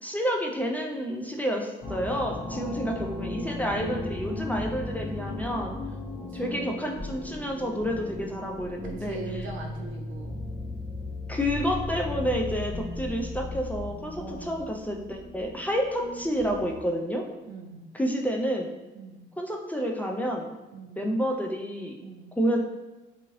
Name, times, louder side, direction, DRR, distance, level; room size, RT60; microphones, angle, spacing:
voice 1, 0.0-5.8 6.3-9.2 11.3-17.2 17.9-18.7 19.4-20.5 21.0-21.9 22.4-22.6, equal, 10° left, 0 dB, 0.4 m, -29 dB
sound 1, 1.8-16.9, left 2 dB, 35° left, 0.9 m, -36 dB
voice 2, 2.5-2.9 6.3-6.9 8.8-10.5 14.1-14.6 17.5-17.8 18.9-19.3 20.7-21.1 22.0-22.3, right 3 dB, 80° right, 1 dB, 0.6 m, -41 dB
2.7 x 2.6 x 3.0 m, 1.1 s
cardioid pair, 90°, 20 cm